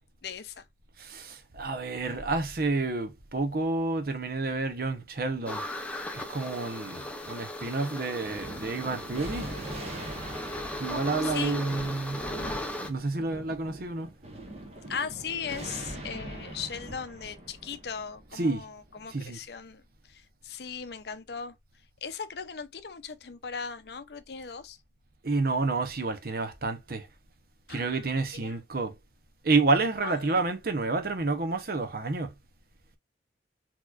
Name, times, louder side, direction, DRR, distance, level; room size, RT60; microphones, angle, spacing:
voice 1, 0.2-0.6 11.2-11.6 14.9-19.8 20.1-21.6 22.0-24.8 27.7-28.6 30.0-30.4, left 6 dB, 60° left, 0.6 m, -38 dB
voice 2, 1.0-5.6 6.1-9.5 10.8-12.3 12.9-14.1 18.3-18.6 19.1-19.4 25.2-27.1 27.7-28.9 29.4-32.3, right 3 dB, 55° right, 0.8 m, -29 dB
sound 1, 5.5-12.9, left 1 dB, 5° left, 0.6 m, -37 dB
Thunder, 8.2-19.1, right 1 dB, 35° right, 1.2 m, -42 dB
4.3 x 3.0 x 2.4 m
head